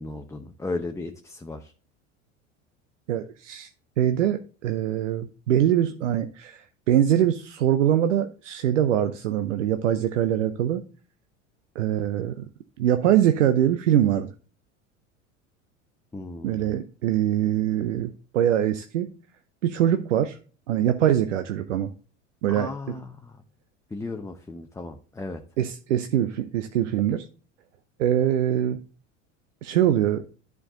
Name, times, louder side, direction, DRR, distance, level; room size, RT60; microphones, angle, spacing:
voice 1, 0.0-1.7 16.1-16.8 22.5-23.4 23.9-25.4, left 2 dB, 10° left, 0.8 m, -35 dB
voice 2, 3.1-3.7 4.0-10.8 11.8-12.4 12.8-14.3 16.4-19.1 19.6-20.4 20.7-21.9 22.4-22.9 25.6-27.3 28.0-28.8 29.6-30.2, right 11 dB, 75° right, 0.7 m, -23 dB
11.0 x 4.7 x 3.8 m
hypercardioid pair, 80°, 37 cm